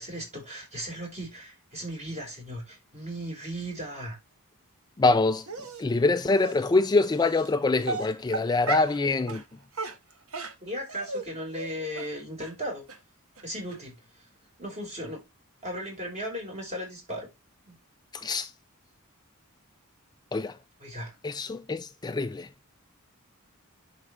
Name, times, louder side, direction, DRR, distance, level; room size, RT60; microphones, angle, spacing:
voice 1, 0.0-4.2 10.6-12.8 13.4-13.9 14.6-15.2 15.6-17.3 17.7-17.8 20.8-21.1, equal, 30° right, 4.8 m, -36 dB
voice 2, 5.0-5.5 5.8-9.4 18.1-18.5 20.3-20.6 21.2-22.5, left 3 dB, 20° left, 0.3 m, -25 dB
Dog, 5.5-5.8 6.4-6.6 7.3-7.5 7.8-9.0 9.3-9.4 9.7-11.3 11.5-11.7 12.0-12.1 12.4-12.5 12.9-13.0 13.4-13.5 13.7-13.8, right 3 dB, 80° right, 1.6 m, -34 dB
10.5 x 4.8 x 3.2 m
head